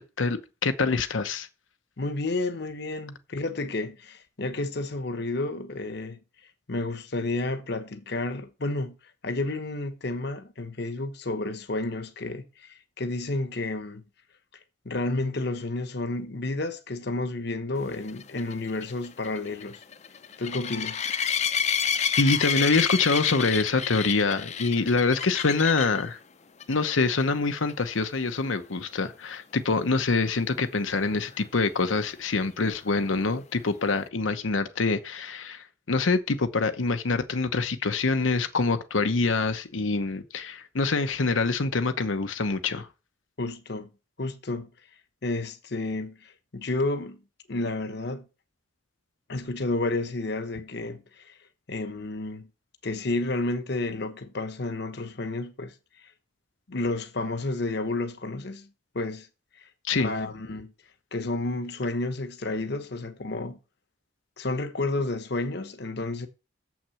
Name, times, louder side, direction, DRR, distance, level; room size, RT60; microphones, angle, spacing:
voice 1, 0.0-1.5 22.2-26.2 26.7-42.9 59.9-60.1, left 3 dB, 90° left, 0.9 m, -25 dB
voice 2, 2.0-6.2 6.7-8.9 9.2-14.0 14.8-19.8 20.4-21.0 43.4-43.9 44.2-44.7 45.2-47.2 47.5-48.2 49.3-51.3 51.7-52.5 52.8-55.7 56.7-58.7 58.9-59.3 59.6-59.7 60.0-60.7 61.1-63.6 64.4-66.3, left 2 dB, 55° left, 1.0 m, -31 dB
sound 1, 18.1-26.0 26.6-26.9 27.2-27.3 27.7-27.8 31.4-31.5, left 7 dB, 35° left, 0.6 m, -29 dB
7.3 x 6.0 x 7.0 m
head